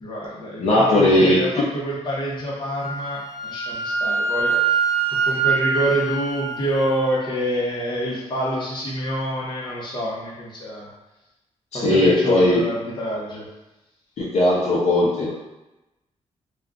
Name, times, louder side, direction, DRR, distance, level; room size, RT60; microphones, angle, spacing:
voice 1, 0.0-4.8 5.1-10.9 11.7-13.5, right 1 dB, 40° left, -5 dB, 0.8 m, -27 dB
voice 2, 0.6-1.6 11.7-12.6 14.2-15.3, left 1 dB, 65° left, -6 dB, 0.6 m, -18 dB
Wind instrument woodwind instrument, 2.8-6.9, right 5 dB, 40° right, 0.9 m, -24 dB
2.3 x 2.2 x 3.6 m, 0.98 s
wide cardioid pair, 150°, 12 cm